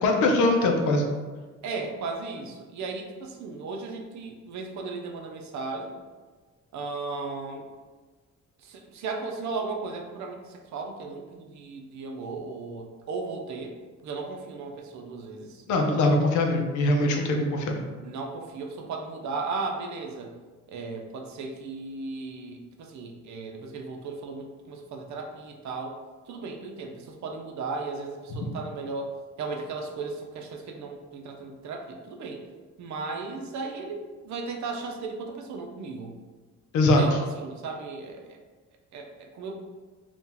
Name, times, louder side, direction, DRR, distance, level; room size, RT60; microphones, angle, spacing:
voice 1, 0.0-1.0 15.7-17.8 36.7-37.2, left 2 dB, 75° left, 3 dB, 0.6 m, -22 dB
voice 2, 1.6-6.0 6.7-7.7 8.6-13.8 14.0-15.6 18.0-20.3 20.7-26.0 26.3-32.4 32.8-36.1 37.0-38.4 38.9-39.6, right 3 dB, 70° right, 2 dB, 0.6 m, -36 dB
2.8 x 2.4 x 3.7 m, 1.3 s
cardioid pair, 90°, 30 cm